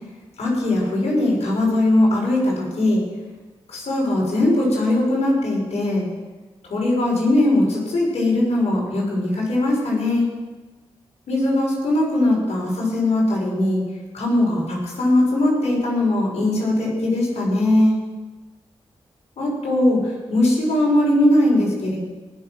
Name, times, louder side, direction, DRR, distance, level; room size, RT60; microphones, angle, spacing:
voice 1, 0.4-3.0 3.7-6.1 6.6-10.3 11.3-13.8 14.1-17.9 19.4-22.0, left 1 dB, 75° left, -4 dB, 6.0 m, -20 dB
19.5 x 7.2 x 6.3 m, 1.2 s
cardioid pair, 45°, 11 cm